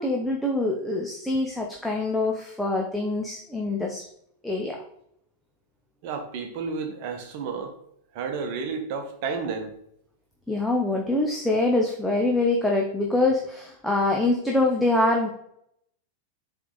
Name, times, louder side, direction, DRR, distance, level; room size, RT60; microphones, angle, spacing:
voice 1, 0.0-4.1 4.4-4.8 10.5-15.3, left 2 dB, ahead, -1 dB, 0.8 m, -24 dB
voice 2, 6.0-7.7 8.1-9.8, right 5 dB, 45° right, 5 dB, 1.1 m, -31 dB
7.5 x 3.5 x 4.0 m, 0.74 s
figure-of-eight pair, 90°, 0 cm